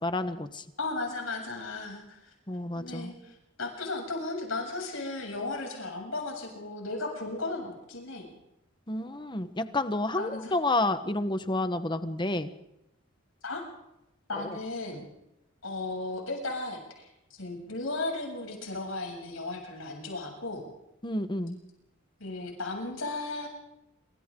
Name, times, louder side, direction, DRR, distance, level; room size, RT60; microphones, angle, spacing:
voice 1, 0.0-0.6 2.5-3.1 8.9-12.5 21.0-21.6, left 2 dB, 20° left, 10 dB, 1.2 m, -30 dB
voice 2, 0.8-2.3 2.8-8.3 10.2-10.5 13.4-13.6 14.3-15.1 15.6-20.7 22.2-23.5, left 2 dB, 75° left, 1 dB, 7.5 m, -35 dB
26.5 x 25.5 x 3.8 m, 0.89 s
head